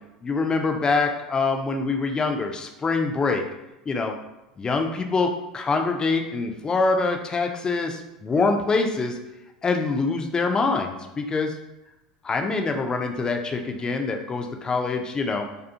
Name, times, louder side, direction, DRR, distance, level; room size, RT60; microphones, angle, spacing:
voice 1, 0.2-3.4 3.9-4.1 4.6-9.2 9.6-11.5 12.2-15.5, left 3 dB, 20° left, 4 dB, 0.3 m, -25 dB
2.4 x 2.3 x 2.6 m, 0.97 s
figure-of-eight pair, 80°, 4 cm